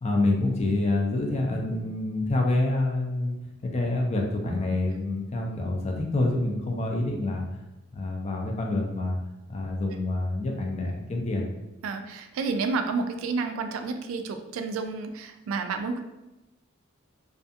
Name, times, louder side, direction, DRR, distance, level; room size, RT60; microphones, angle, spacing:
voice 1, 0.0-3.4 3.6-7.5 7.9-9.2 9.5-11.5, left 2 dB, 30° left, 1 dB, 0.4 m, -27 dB
voice 2, 11.8-16.0, right 4 dB, 70° right, 7 dB, 0.3 m, -30 dB
2.4 x 2.3 x 2.6 m, 1.0 s
head